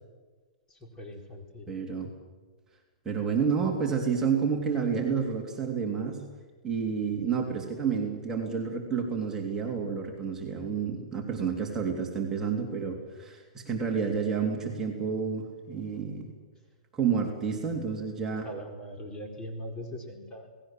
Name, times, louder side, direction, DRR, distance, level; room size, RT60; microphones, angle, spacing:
voice 1, 0.7-1.7 18.4-20.5, equal, 20° left, 3 dB, 4.3 m, -41 dB
voice 2, 1.7-2.1 3.0-6.2 6.6-16.3 16.9-18.5, right 6 dB, 15° right, 0 dB, 3.3 m, -30 dB
28.0 x 19.5 x 7.7 m, 1.4 s
hypercardioid pair, 150°, 4 cm